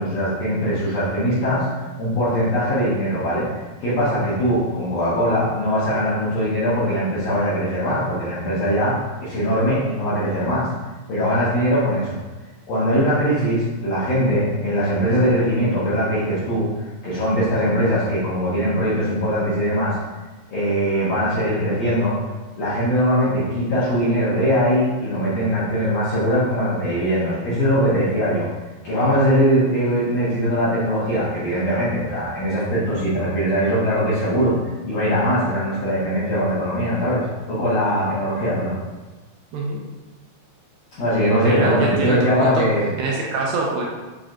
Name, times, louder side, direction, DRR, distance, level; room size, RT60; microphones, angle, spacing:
voice 1, 0.0-8.9 9.2-10.7 11.1-12.2 12.7-20.0 20.5-22.2 22.5-28.5 28.8-34.5 34.8-38.8 41.0-42.9, equal, 85° left, -11 dB, 1.4 m, -21 dB
voice 2, 41.4-42.7 43.0-43.9, right 3 dB, 80° right, -2 dB, 2.2 m, -24 dB
7.4 x 2.9 x 2.4 m, 1.2 s
omnidirectional pair, 4.5 m